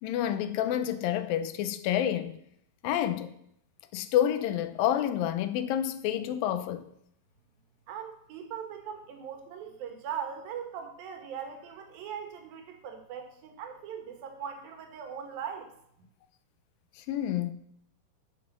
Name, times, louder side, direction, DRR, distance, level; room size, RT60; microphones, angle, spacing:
voice 1, 0.0-2.4 2.8-3.3 3.9-6.9 17.0-17.5, left 11 dB, 85° left, 2.5 m, -29 dB
voice 2, 7.9-15.7, right 8 dB, 85° right, 3.2 m, -40 dB
9.2 x 7.4 x 6.6 m
omnidirectional pair, 4.0 m